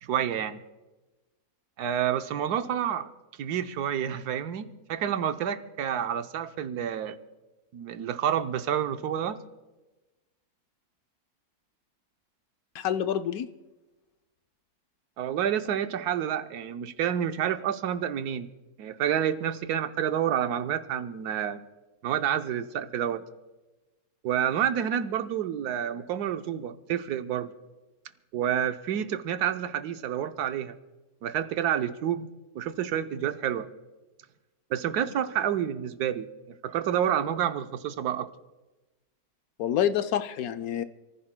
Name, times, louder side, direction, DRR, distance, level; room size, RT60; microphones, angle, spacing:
voice 1, 0.0-0.6 1.8-3.1 3.4-7.2 7.7-9.4 15.2-18.5 18.8-21.6 22.0-23.2 24.2-27.5 28.3-30.8 31.2-32.3 32.5-33.7 34.7-36.3 36.6-38.3, right 9 dB, 90° right, 9 dB, 1.3 m, -29 dB
voice 2, 12.7-13.5 39.6-40.8, left 10 dB, 75° left, 10 dB, 1.1 m, -27 dB
28.5 x 15.0 x 2.2 m, 1.1 s
omnidirectional pair, 1.6 m